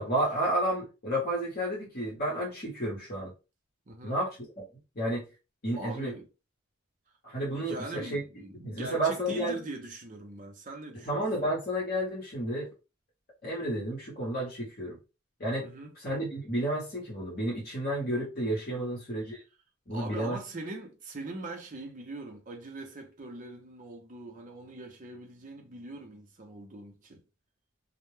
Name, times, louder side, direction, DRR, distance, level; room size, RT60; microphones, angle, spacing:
voice 1, 0.0-3.3 4.0-4.6 5.0-5.3 5.6-6.1 7.2-8.2 8.6-9.6 11.0-12.7 13.4-15.0 15.4-15.7 16.0-19.4 19.9-20.4, right 1 dB, 45° left, 0.9 m, -31 dB
voice 2, 3.9-4.2 5.7-6.3 7.5-11.5 15.6-15.9 18.7-18.9 19.9-27.2, right 2 dB, 35° right, 0.5 m, -42 dB
2.1 x 2.0 x 3.1 m
head